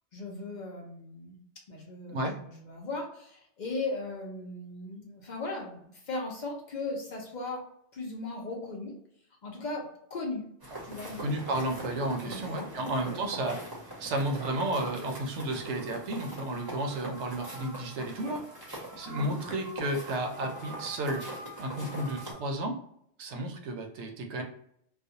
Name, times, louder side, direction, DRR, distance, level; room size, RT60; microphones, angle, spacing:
voice 1, 0.1-1.4 1.7-7.6 7.9-9.0 9.4-10.5 10.8-11.5 12.2-13.2 19.1-19.4 21.7-22.0, left 2 dB, 50° left, 0 dB, 0.6 m, -38 dB
sound 1, 10.6-22.3, right 1 dB, 25° right, 0.7 m, -42 dB
voice 2, 11.2-13.6 14.0-18.4 19.0-21.2 21.6-22.8 23.2-24.4, right 1 dB, 75° right, 3 dB, 0.9 m, -32 dB
2.4 x 2.2 x 2.7 m, 0.70 s
omnidirectional pair, 1.2 m